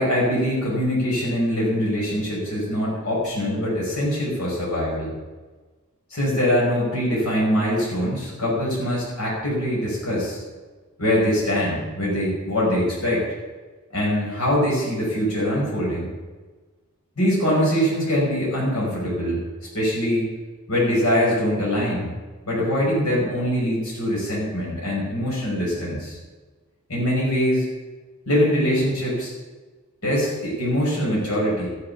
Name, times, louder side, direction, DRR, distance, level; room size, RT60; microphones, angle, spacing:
voice 1, 0.0-5.1 6.1-10.4 11.0-13.2 13.9-16.1 17.2-19.4 19.7-20.3 20.7-22.1 22.5-26.2 26.9-27.7 28.3-29.3 30.0-31.7, equal, 80° left, -5 dB, 5.6 m, -23 dB
14.0 x 11.0 x 7.0 m, 1.3 s
head